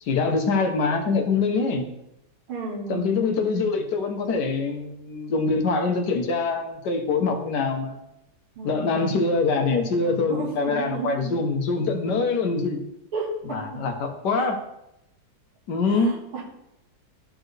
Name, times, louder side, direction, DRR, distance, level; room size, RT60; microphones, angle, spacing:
voice 1, 0.1-1.9 2.9-8.0 8.6-12.8 13.4-14.6 15.7-16.1, left 4 dB, 60° left, 4 dB, 1.4 m, -24 dB
voice 2, 2.5-3.1 8.6-9.1 10.0-11.4 13.1-13.8 14.4-14.5 15.9-16.4, right 3 dB, 85° right, -3 dB, 2.5 m, -33 dB
12.5 x 4.3 x 3.3 m, 0.85 s
omnidirectional pair, 2.3 m